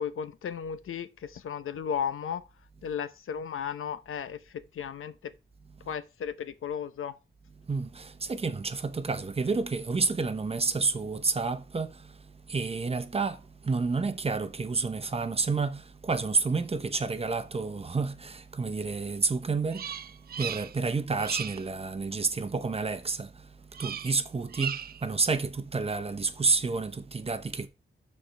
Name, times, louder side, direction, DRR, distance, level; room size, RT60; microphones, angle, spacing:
voice 1, 0.0-2.4 2.8-5.3 5.9-7.2, left 7 dB, 85° left, 0.7 m, -35 dB
voice 2, 7.6-27.7, right 4 dB, 30° right, 0.8 m, -30 dB
Bird vocalization bird call bird song, 19.7-20.9 21.2-21.7 23.7-24.2 24.5-25.1, right 8 dB, 50° right, 0.4 m, -37 dB
12.5 x 4.4 x 3.4 m
wide cardioid pair, 150°, 21 cm